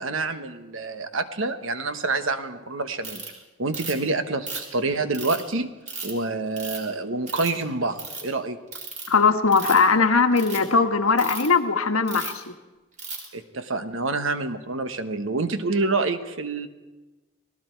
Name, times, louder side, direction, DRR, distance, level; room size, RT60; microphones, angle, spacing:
voice 1, 0.0-3.2 3.6-5.7 6.0-8.6 13.3-16.7, right 3 dB, 65° right, 9 dB, 1.2 m, -27 dB
Ratchet pawl, 3.0-3.3 3.7-4.1 4.5-5.4 5.9-6.1 6.6-6.9 7.3-7.6 7.9-8.2 8.7-9.1 9.5-9.9 10.3-10.6 11.2-11.5 12.1-12.4 13.0-13.3, right 4 dB, 35° right, 4.2 m, -35 dB
voice 2, 9.1-12.5, left 4 dB, 85° left, 6 dB, 1.4 m, -20 dB
30.0 x 19.0 x 4.6 m, 1.2 s
head